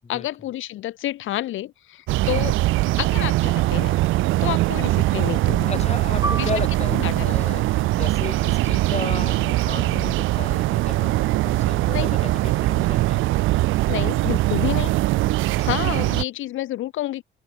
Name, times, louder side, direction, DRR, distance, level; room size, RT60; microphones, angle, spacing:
voice 1, 0.1-2.6 3.0-4.0 4.4-5.9 6.4-6.5 7.0-7.6 11.9-12.1 13.9-14.9 15.6-17.2, left 14 dB, 80° left, 1.4 m, -29 dB
sound 1, 2.1-16.2, right 18 dB, 85° right, 0.6 m, -21 dB
voice 2, 5.7-13.3 15.5-15.7, left 5 dB, 35° left, 4.2 m, -34 dB
Piano, 6.2-11.3 11.6-11.8 12.5-12.9, right 2 dB, 15° right, 7.7 m, -36 dB
cardioid pair, 90°, 20 cm